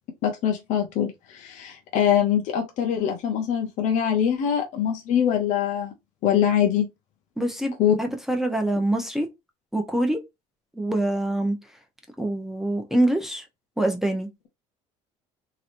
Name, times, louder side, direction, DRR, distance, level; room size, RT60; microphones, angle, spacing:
voice 1, 0.2-5.9 6.2-6.9 7.8-8.0, left 9 dB, 65° left, 0.7 m, -23 dB
voice 2, 7.4-9.3 9.7-10.2 10.7-11.6 12.2-13.4 13.8-14.3, right 1 dB, 5° right, 0.8 m, -25 dB
3.0 x 2.9 x 2.6 m
supercardioid pair, 90°, 14 cm